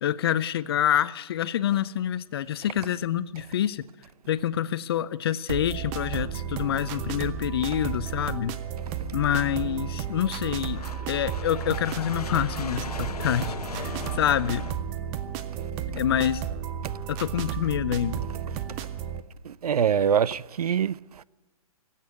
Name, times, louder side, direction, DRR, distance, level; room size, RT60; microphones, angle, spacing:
voice 1, 0.0-3.8 4.3-8.5 9.1-14.6 15.9-16.4 17.1-18.3, left 10 dB, 40° left, 0.5 m, -27 dB
sound 1, 5.5-19.2, right 9 dB, 15° right, 0.4 m, -33 dB
sound 2, 8.4-14.7, left 6 dB, 85° left, 0.9 m, -40 dB
voice 2, 19.4-21.2, right 8 dB, 80° right, 0.4 m, -25 dB
16.5 x 8.3 x 9.7 m
hypercardioid pair, 150°, 19 cm